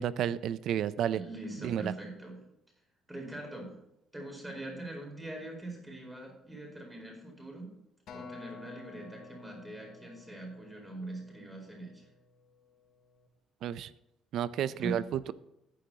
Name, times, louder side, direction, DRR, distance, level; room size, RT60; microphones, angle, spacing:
voice 1, 0.0-1.2 1.6-1.9 13.6-13.9 14.3-15.3, right 10 dB, 65° right, 16 dB, 0.5 m, -31 dB
voice 2, 1.1-2.4 3.1-3.7 4.1-7.7 8.1-12.1 14.8-15.0, right 2 dB, 10° right, 0 dB, 4.6 m, -42 dB
Acoustic guitar, 8.1-12.5 13.1-13.3, left 3 dB, 60° left, 2.8 m, -51 dB
14.5 x 10.0 x 2.9 m, 0.84 s
cardioid pair, 125°, 0 cm